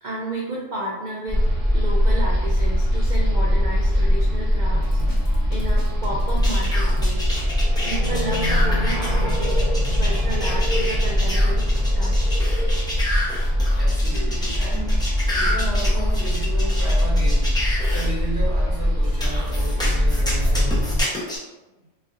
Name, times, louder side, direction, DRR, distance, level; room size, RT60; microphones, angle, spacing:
voice 1, 0.0-1.5 1.7-4.9 5.5-7.5 7.8-9.6 10.0-12.4 19.3-19.5, right 2 dB, 55° right, -4 dB, 0.5 m, -32 dB
sound 1, 1.3-21.0, equal, 30° right, 1.2 m, -21 dB
Drum kit, 4.7-7.2, right 1 dB, 75° left, 1.2 m, -37 dB
sound 2, 6.4-18.1 19.2-21.4, left 1 dB, 5° left, 0.5 m, -30 dB
voice 2, 13.8-15.1 15.3-20.8, right 2 dB, 45° left, -7 dB, 1.4 m, -34 dB
4.2 x 2.6 x 2.4 m, 1.1 s
omnidirectional pair, 1.3 m